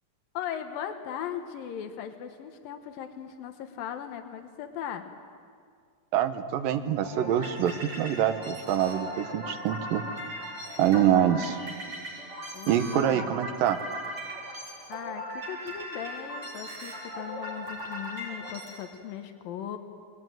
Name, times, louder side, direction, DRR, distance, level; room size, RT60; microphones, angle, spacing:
voice 1, 0.3-5.1 12.5-13.3 14.9-19.8, left 9 dB, 90° left, 7 dB, 3.0 m, -38 dB
voice 2, 6.1-10.0 10.8-11.6 12.7-13.8, right 10 dB, 80° right, 9 dB, 2.9 m, -25 dB
sound 1, 7.0-18.8, equal, 35° right, 6.7 m, -38 dB
28.5 x 21.0 x 9.2 m, 2.1 s
omnidirectional pair, 3.9 m